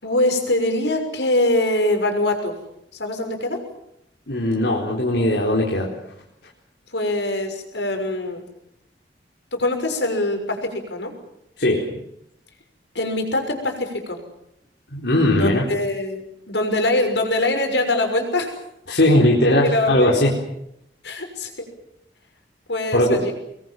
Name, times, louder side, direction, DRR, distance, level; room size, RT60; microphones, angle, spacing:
voice 1, 0.0-2.5 2.9-3.6 6.9-8.4 9.5-11.1 12.9-14.2 15.4-18.6 19.6-20.2 21.0-21.7 22.7-23.3, left 1 dB, 85° left, 5 dB, 6.2 m, -23 dB
voice 2, 4.3-5.9 11.6-11.9 14.9-15.6 18.9-20.3 22.9-23.2, left 1 dB, 70° left, -2 dB, 4.2 m, -18 dB
26.0 x 22.0 x 7.7 m, 0.79 s
head